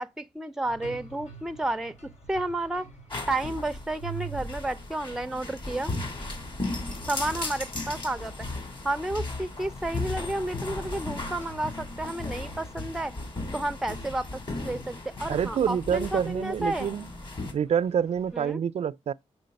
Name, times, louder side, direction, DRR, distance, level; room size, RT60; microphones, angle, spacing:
voice 1, 0.0-1.9 2.3-2.9 3.3-5.9 7.1-8.3 8.8-13.1 13.5-14.3 14.6-16.9 18.3-18.6, right 1 dB, 5° right, 0.5 m, -31 dB
sound 1, 0.6-18.5, right 5 dB, 80° left, 3.7 m, -48 dB
sound 2, 3.1-17.5, left 2 dB, 40° left, 2.9 m, -36 dB
voice 2, 15.3-17.1 17.5-19.1, right 8 dB, 60° right, 0.4 m, -27 dB
6.6 x 4.8 x 5.2 m
wide cardioid pair, 100°, 12 cm